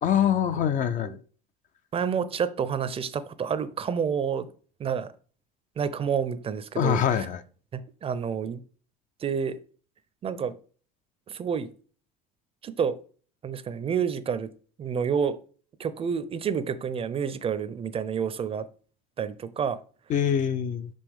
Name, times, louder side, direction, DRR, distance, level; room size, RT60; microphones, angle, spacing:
voice 1, 0.0-1.2 6.8-7.4 20.1-20.9, left 9 dB, 40° left, 12 dB, 0.5 m, -24 dB
voice 2, 1.9-4.5 4.8-5.1 5.8-7.3 7.7-8.6 9.2-9.6 10.2-10.6 11.3-11.7 12.6-13.0 13.4-14.5 14.8-15.4 15.8-18.7 19.2-19.8, right 7 dB, 30° right, 14 dB, 0.5 m, -29 dB
5.4 x 5.2 x 3.5 m, 0.41 s
supercardioid pair, 100°, 19 cm